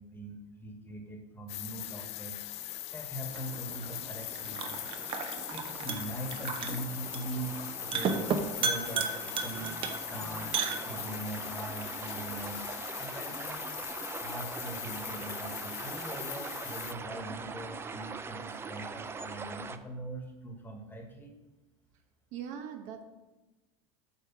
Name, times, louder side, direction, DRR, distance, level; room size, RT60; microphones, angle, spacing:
voice 1, 0.0-2.5 2.9-5.1 5.3-7.5 7.8-12.7 13.0-13.7 14.2-21.3, right 1 dB, 15° left, 3 dB, 1.5 m, -42 dB
sound 1, 1.5-16.9, left 14 dB, 45° left, 0.5 m, -41 dB
sound 2, 3.3-11.3, right 5 dB, 35° right, 0.9 m, -35 dB
sound 3, 3.5-19.8, right 5 dB, 15° right, 0.4 m, -43 dB
voice 2, 22.3-23.0, right 8 dB, 55° right, 5 dB, 1.2 m, -40 dB
8.9 x 4.7 x 6.0 m, 1.1 s
supercardioid pair, 135°, 15 cm